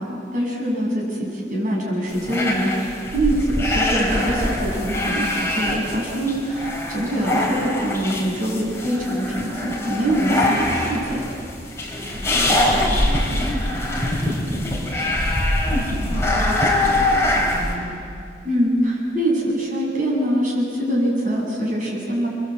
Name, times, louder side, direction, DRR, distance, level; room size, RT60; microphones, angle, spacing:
voice 1, 0.0-11.2 18.4-22.3, right 1 dB, 45° right, -2 dB, 7.7 m, -23 dB
sound 1, 2.1-17.8, left 1 dB, 15° left, 4.2 m, -23 dB
voice 2, 12.0-15.2 15.6-18.0, equal, 15° right, -6 dB, 5.5 m, -32 dB
30.0 x 22.5 x 8.4 m, 2.4 s
head